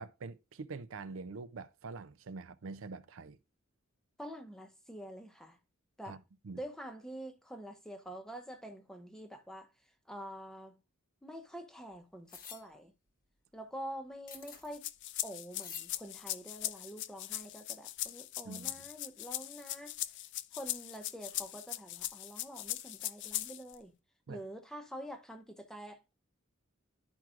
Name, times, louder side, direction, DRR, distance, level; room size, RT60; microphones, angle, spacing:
voice 1, 0.0-3.4 6.0-6.2 6.4-6.6 18.5-18.7 24.3-24.4, right 4 dB, 75° right, 0.5 m, -45 dB
voice 2, 4.2-5.6 6.0-6.2 6.6-9.7 10.1-10.8 11.2-12.9 13.5-14.9 15.2-20.1 20.5-23.9 24.3-26.2, equal, 5° left, 0.7 m, -46 dB
sound 1, 12.3-12.6 14.3-14.7 15.6-15.9, left 7 dB, 45° left, 0.9 m, -47 dB
sound 2, 14.7-23.8, left 14 dB, 60° left, 0.4 m, -40 dB
11.5 x 4.5 x 2.4 m
head